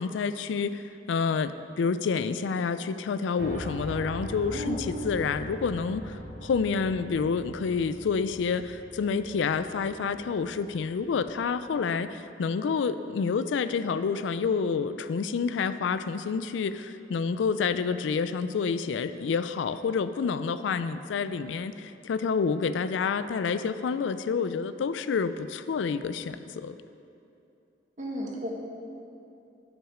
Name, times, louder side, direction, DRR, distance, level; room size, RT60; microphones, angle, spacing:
voice 1, 0.0-26.7, left 5 dB, 85° left, 12 dB, 0.4 m, -28 dB
Piano, 3.4-11.4, equal, 65° right, 1.4 m, -41 dB
voice 2, 4.5-4.9 28.0-28.5, equal, 45° right, -2 dB, 1.5 m, -33 dB
10.0 x 6.1 x 4.9 m, 2.7 s
head